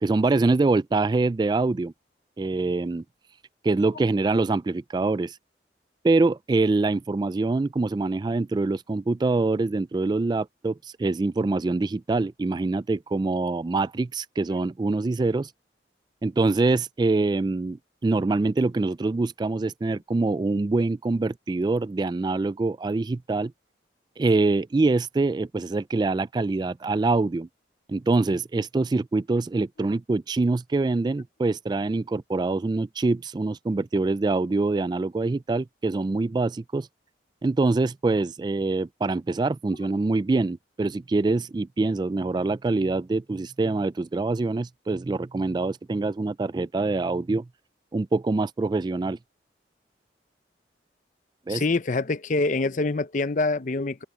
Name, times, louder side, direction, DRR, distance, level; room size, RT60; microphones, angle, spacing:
voice 1, 0.0-1.9 2.4-3.0 3.6-5.4 6.0-15.5 16.2-23.5 24.2-27.5 27.9-36.9 37.4-47.5 47.9-49.2 51.5-51.6, right 3 dB, 25° right, 0.3 m, -25 dB
voice 2, 51.5-54.0, left 3 dB, 45° left, 0.6 m, -25 dB
open air
head